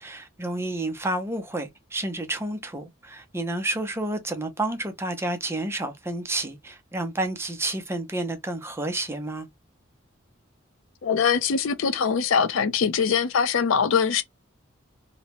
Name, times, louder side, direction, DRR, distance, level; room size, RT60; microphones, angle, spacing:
voice 1, 0.0-9.5, right 2 dB, 15° right, 0.5 m, -30 dB
voice 2, 11.0-14.2, left 6 dB, 80° left, 0.5 m, -22 dB
2.7 x 2.1 x 2.8 m
head